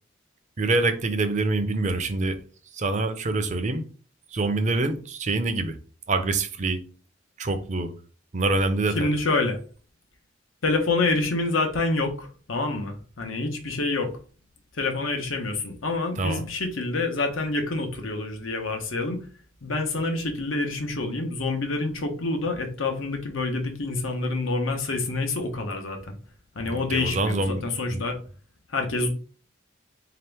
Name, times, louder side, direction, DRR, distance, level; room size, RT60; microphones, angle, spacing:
voice 1, 0.6-2.4 2.7-3.9 4.3-5.8 6.1-6.8 7.4-7.9 8.3-9.2 16.2-16.4 26.6-27.6 27.9-28.0, right 2 dB, 35° right, 0.5 m, -25 dB
voice 2, 8.9-9.6 10.6-14.1 14.7-19.2 19.6-26.2 26.5-28.2 28.7-29.1, left 3 dB, 90° left, 0.9 m, -27 dB
3.9 x 2.9 x 3.4 m
head